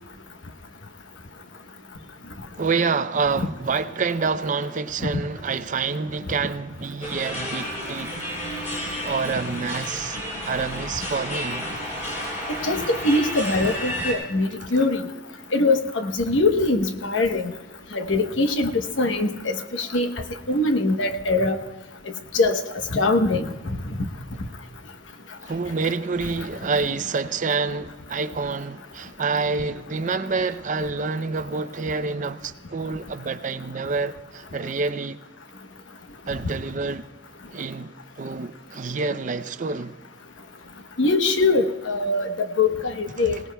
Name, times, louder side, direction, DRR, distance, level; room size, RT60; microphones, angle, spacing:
voice 1, 2.6-8.1 9.0-11.7 25.4-35.2 36.3-37.1 37.5-37.9 38.2-40.0 43.2-43.4, right 4 dB, 45° right, 0.5 m, -27 dB
sound 1, 7.0-14.1, equal, 45° left, 6.0 m, -31 dB
voice 2, 12.5-15.0 15.5-17.4 17.9-18.7 19.0-20.1 20.5-21.6 22.3-22.6 22.9-23.5 41.0-43.4, left 2 dB, 75° left, 1.0 m, -22 dB
26.0 x 18.0 x 2.3 m
head